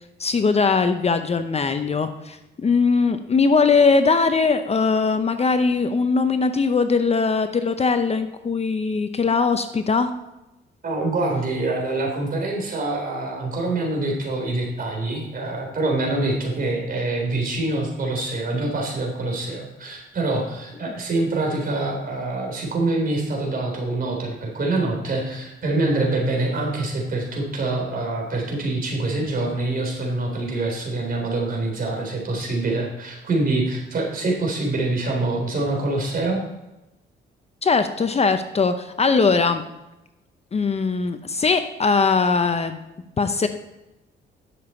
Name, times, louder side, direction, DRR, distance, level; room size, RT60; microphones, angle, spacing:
voice 1, 0.2-10.1 20.9-21.0 37.6-39.6 40.5-42.8 43.2-43.5, left 4 dB, 30° left, 9 dB, 0.7 m, -20 dB
voice 2, 10.8-36.4, right 2 dB, 45° right, 1 dB, 3.7 m, -25 dB
11.0 x 7.0 x 4.3 m, 0.95 s
cardioid pair, 90°, 20 cm